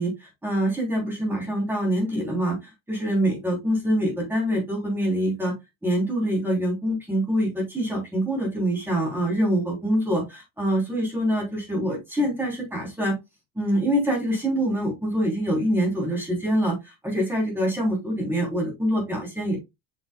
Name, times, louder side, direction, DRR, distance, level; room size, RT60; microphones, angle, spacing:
voice 1, 0.0-2.5 2.9-5.5 5.8-13.1 13.5-19.6, equal, 5° right, -2 dB, 3.3 m, -25 dB
7.0 x 6.1 x 2.3 m, 0.22 s
cardioid pair, 180°, 44 cm